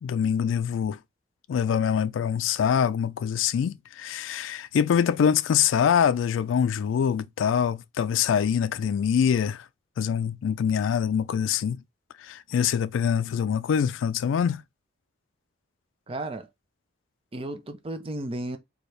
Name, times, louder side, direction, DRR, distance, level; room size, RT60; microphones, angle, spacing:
voice 1, 0.0-1.0 1.5-9.7 10.0-11.8 12.2-14.6, left 8 dB, 80° left, 0.3 m, -24 dB
voice 2, 16.1-16.5 17.3-18.6, right 1 dB, 30° right, 0.5 m, -33 dB
4.3 x 2.3 x 3.2 m
head